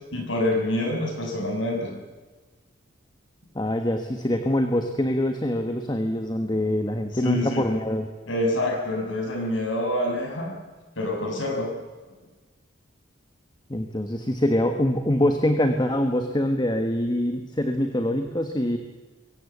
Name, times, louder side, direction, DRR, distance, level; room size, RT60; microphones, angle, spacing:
voice 1, 0.1-1.9 7.2-7.6 8.3-10.5 11.0-11.7, left 1 dB, 90° left, 2 dB, 6.6 m, -26 dB
voice 2, 3.5-8.1 13.7-18.8, left 1 dB, 25° left, 6 dB, 1.4 m, -24 dB
23.0 x 17.0 x 8.2 m, 1.3 s
head